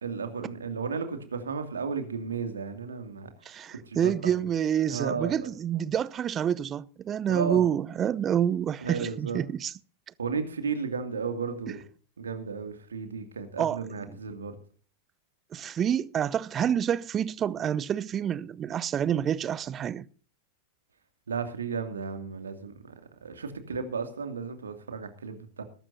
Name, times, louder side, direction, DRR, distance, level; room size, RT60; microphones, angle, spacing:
voice 1, 0.0-3.3 3.7-4.5 4.9-5.5 7.3-7.7 8.8-9.4 10.2-11.8 12.2-14.6 21.3-22.9 23.2-25.6, right 5 dB, 70° right, 2.5 m, -34 dB
voice 2, 3.5-9.7 13.6-14.1 15.5-20.0, right 9 dB, 25° right, 0.7 m, -28 dB
21.5 x 12.0 x 2.7 m
figure-of-eight pair, 90°, 0 cm